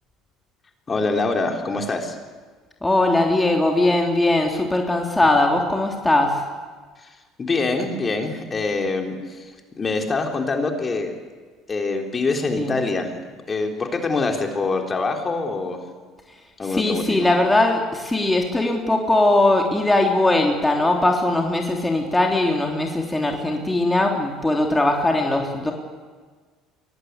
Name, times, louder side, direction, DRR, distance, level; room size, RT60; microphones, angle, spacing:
voice 1, 0.9-2.2 7.4-9.5 9.8-11.1 11.7-13.2 13.5-15.8 16.6-17.3, left 3 dB, 30° left, 3 dB, 3.7 m, -24 dB
voice 2, 2.8-6.4 12.6-12.7 16.6-25.7, left 2 dB, 10° left, 1 dB, 3.3 m, -20 dB
23.5 x 19.0 x 8.2 m, 1.5 s
supercardioid pair, 80°, 0 cm